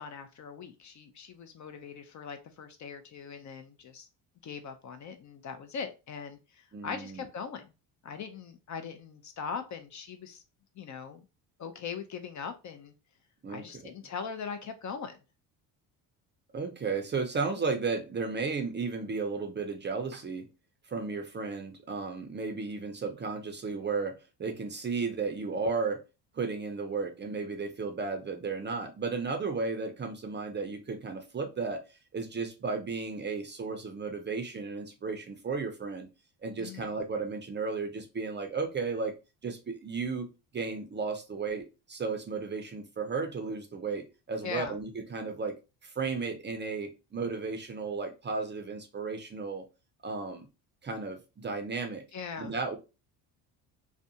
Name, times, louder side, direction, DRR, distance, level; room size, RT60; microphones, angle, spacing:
voice 1, 0.0-4.1 4.4-7.7 8.0-10.4 10.8-11.2 11.6-12.9 13.5-15.1 36.6-37.0 44.4-44.8 52.1-52.5, left 6 dB, 40° left, 0.4 m, -40 dB
voice 2, 6.7-7.3 13.4-13.9 16.5-20.5 20.9-26.0 26.3-31.8 32.1-36.1 36.4-39.1 39.4-45.6 45.8-49.7 50.0-50.5 50.8-52.0 52.4-52.8, right 4 dB, 25° right, 0.5 m, -34 dB
2.4 x 2.2 x 2.7 m
supercardioid pair, 75°, 46 cm